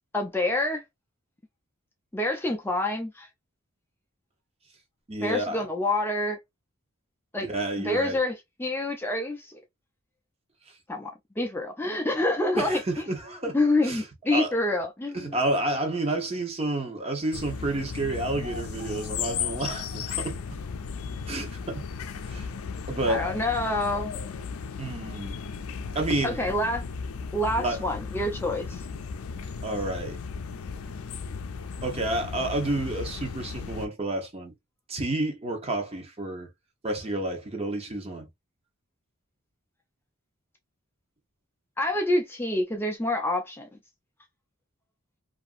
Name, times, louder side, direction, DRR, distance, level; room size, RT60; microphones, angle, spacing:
voice 1, 0.1-0.8 2.1-3.3 5.2-6.4 7.3-7.5 7.8-9.6 10.9-13.0 13.5-15.4 23.1-24.1 26.2-26.8 27.3-28.8 41.8-43.7, left 1 dB, 10° left, 0.4 m, -27 dB
voice 2, 5.1-5.7 7.4-8.2 12.6-13.6 13.8-14.0 14.3-14.5 15.1-20.4 21.3-21.8 22.2-22.5 22.9-23.3 24.8-25.4 25.9-26.4 27.6-27.8 29.6-30.2 31.8-34.5 34.9-36.5 36.8-38.3, right 2 dB, 30° right, 0.7 m, -30 dB
sound 1, 17.3-33.9, left 5 dB, 85° left, 0.4 m, -35 dB
2.8 x 2.5 x 2.4 m
head